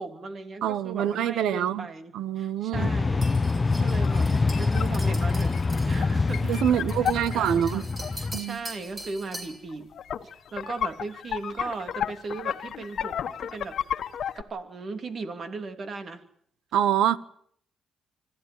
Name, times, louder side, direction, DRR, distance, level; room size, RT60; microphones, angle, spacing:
voice 1, 0.0-3.3 3.8-5.6 5.9-7.9 8.2-9.9 10.2-13.8 14.3-16.2, right 3 dB, 45° right, 3.0 m, -37 dB
voice 2, 0.6-1.9 2.1-2.9 6.5-7.8 8.3-8.6 16.7-17.2, right 10 dB, 80° right, 1.0 m, -25 dB
sound 1, 2.7-8.4, left 3 dB, 25° left, 0.9 m, -25 dB
sound 2, 3.2-9.6, right 1 dB, 25° right, 7.2 m, -43 dB
sound 3, 4.0-8.3 9.3-9.4 9.7-14.4, left 9 dB, 65° left, 1.5 m, -33 dB
25.5 x 15.0 x 9.7 m
cardioid pair, 90°, 0 cm